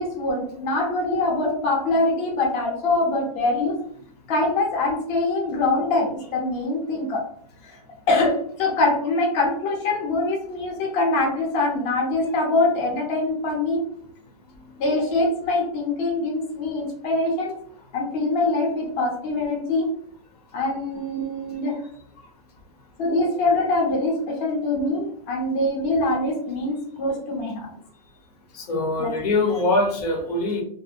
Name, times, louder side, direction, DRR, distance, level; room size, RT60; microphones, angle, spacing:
voice 1, 0.0-3.8 4.3-7.2 7.6-7.8 8.1-13.9 14.8-17.5 17.9-19.9 20.5-21.8 23.0-27.7 29.0-29.1, left 2 dB, 30° left, -1 dB, 0.6 m, -24 dB
voice 2, 28.5-30.6, left 2 dB, 85° left, 2 dB, 0.8 m, -23 dB
2.5 x 2.1 x 2.5 m, 0.63 s
supercardioid pair, 160°, 19 cm